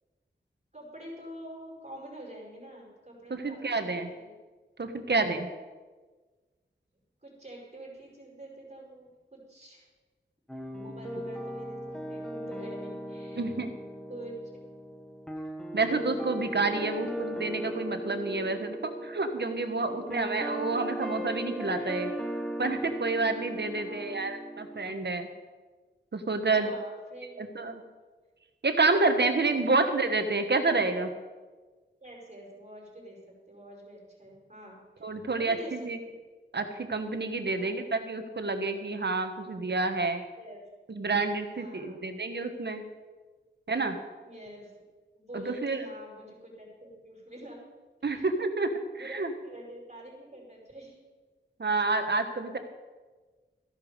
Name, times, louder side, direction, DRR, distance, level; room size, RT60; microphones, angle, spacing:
voice 1, 0.7-4.4 7.2-9.9 10.7-13.5 14.1-14.4 16.7-17.1 19.8-20.2 21.7-22.0 23.5-24.2 26.5-27.4 29.5-29.7 32.0-35.9 37.5-37.9 40.4-40.6 41.5-42.1 44.2-44.7 45.1-47.6 48.0-48.3 49.0-51.0, right 1 dB, 35° right, -3 dB, 5.2 m, -47 dB
voice 2, 3.3-4.1 4.8-5.5 13.3-13.7 15.7-22.1 22.6-25.3 26.1-26.7 27.4-27.8 28.6-31.1 35.0-36.0 36.5-40.2 40.9-42.8 43.7-44.0 45.3-45.8 48.0-49.3 51.6-52.6, right 3 dB, 60° right, 7 dB, 1.3 m, -29 dB
sound 1, 10.5-24.9, right 1 dB, 5° left, 1.4 m, -38 dB
15.0 x 10.5 x 5.2 m, 1.4 s
wide cardioid pair, 75°, 20 cm